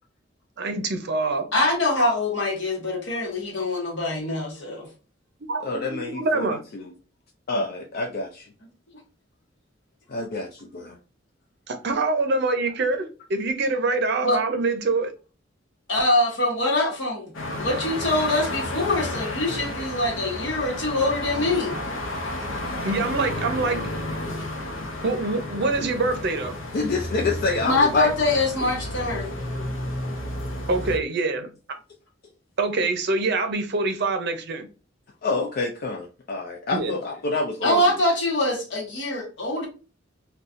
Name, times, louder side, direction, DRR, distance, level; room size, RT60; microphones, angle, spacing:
voice 1, 0.6-1.5 5.5-6.6 11.7-15.1 22.8-23.9 25.0-26.6 30.7-31.5 32.6-34.7 36.7-36.9, right 3 dB, 60° right, 0.6 m, -25 dB
voice 2, 1.5-4.9 14.2-14.4 15.9-21.8 27.6-29.3 37.6-39.7, left 2 dB, 65° left, 1.2 m, -24 dB
voice 3, 5.6-6.9 7.5-8.5 10.1-10.5 10.7-10.9 26.7-28.1 29.6-29.7 35.2-37.8, left 3 dB, 50° left, 0.4 m, -27 dB
sound 1, 17.3-31.0, left 1 dB, 85° left, 0.7 m, -32 dB
4.0 x 2.3 x 2.5 m
head